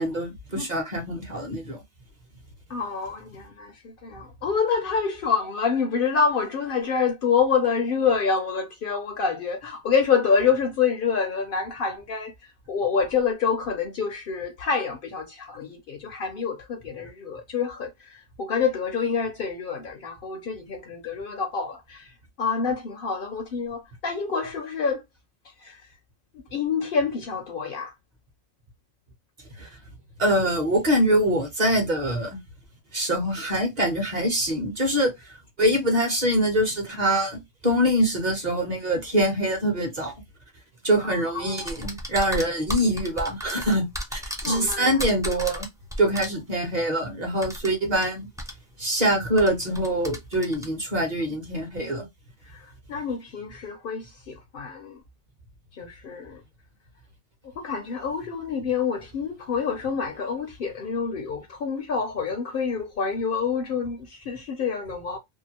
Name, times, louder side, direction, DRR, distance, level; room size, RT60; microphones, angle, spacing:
voice 1, 0.0-1.8 29.6-29.7 30.2-32.4 32.9-35.1 35.6-40.1 40.8-43.8 44.1-45.7 46.0-48.3 48.8-52.1, equal, 40° right, 1.0 m, -24 dB
voice 2, 2.7-25.0 25.6-25.9 26.3-27.9 41.0-41.8 44.4-45.1 45.4-45.6 52.4-55.0 55.7-56.4 57.6-65.2, left 6 dB, 60° left, 0.6 m, -27 dB
sound 1, 41.6-46.3 47.4-48.1 48.4-48.5 49.4-50.7, equal, 5° right, 0.3 m, -33 dB
2.7 x 2.3 x 2.8 m
omnidirectional pair, 1.2 m